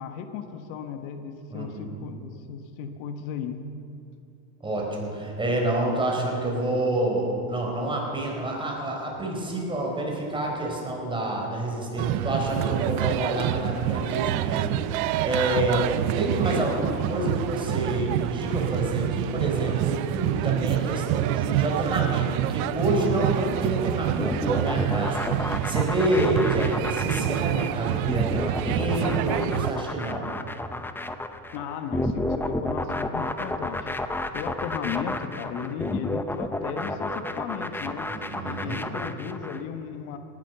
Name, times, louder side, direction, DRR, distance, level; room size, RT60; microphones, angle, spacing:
voice 1, 0.0-3.6 31.5-38.1 38.4-40.2, left 7 dB, 75° left, 7 dB, 1.4 m, -35 dB
voice 2, 1.5-2.1 4.6-15.9 16.2-30.3 38.1-38.8, right 1 dB, 10° right, -2 dB, 4.2 m, -28 dB
sound 1, 12.0-29.7, right 13 dB, 80° right, 0.7 m, -27 dB
sound 2, 24.2-39.6, left 1 dB, 5° left, 0.6 m, -31 dB
18.5 x 10.5 x 6.9 m, 2.7 s
supercardioid pair, 125°, 42 cm